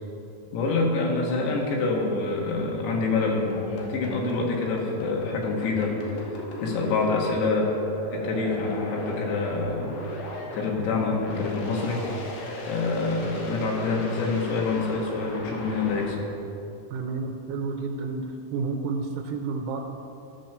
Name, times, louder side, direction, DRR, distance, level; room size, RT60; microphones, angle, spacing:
voice 1, 0.5-6.3 6.6-7.7 8.1-9.9 10.5-12.0 12.7-16.2, left 3 dB, 90° left, -1 dB, 3.5 m, -26 dB
sound 1, 3.5-16.0, left 1 dB, 70° left, 3.0 m, -36 dB
voice 2, 16.9-18.3 18.5-19.8, right 4 dB, 85° right, 3 dB, 2.7 m, -30 dB
13.5 x 4.5 x 6.5 m, 2.8 s
omnidirectional pair, 4.8 m